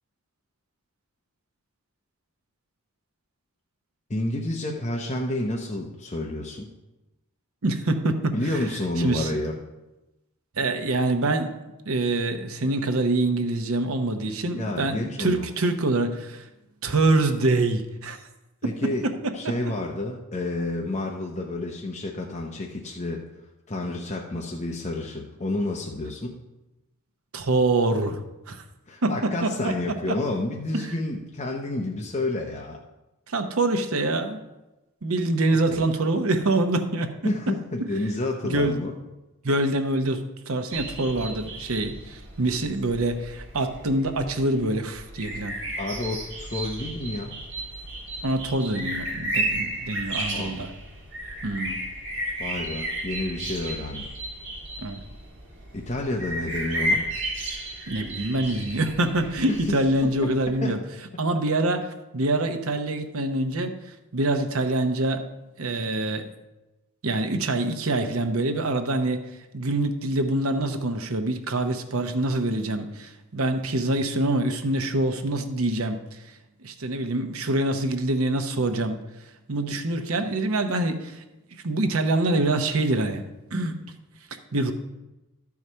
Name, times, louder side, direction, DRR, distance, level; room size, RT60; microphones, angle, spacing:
voice 1, 4.1-6.7 8.3-9.5 14.5-15.5 18.6-19.0 19.3-23.2 23.7-26.4 28.9-32.8 35.7-35.9 37.2-39.0 45.8-47.4 50.3-50.7 52.4-54.1 55.7-57.1 59.5-59.6 60.0-60.8, left 2 dB, 30° left, 0 dB, 0.7 m, -30 dB
voice 2, 7.6-8.6 9.0-9.3 10.6-11.5 11.9-16.4 16.8-18.2 19.0-19.1 27.3-28.2 28.5-28.6 29.0-29.7 30.1-30.2 30.7-30.8 33.3-34.4 35.0-37.1 38.4-38.8 39.4-45.6 48.2-50.7 51.4-51.8 54.8-55.0 57.9-60.8 61.2-63.7 64.1-65.2 65.6-66.3 67.0-69.2 69.5-76.2 76.6-79.0 79.5-81.2 81.6-83.2 83.5-83.7 84.5-84.7, right 2 dB, 75° right, 7 dB, 0.8 m, -25 dB
sound 1, 40.7-60.5, right 1 dB, 55° right, 1.8 m, -33 dB
12.0 x 4.8 x 5.5 m, 1.0 s
head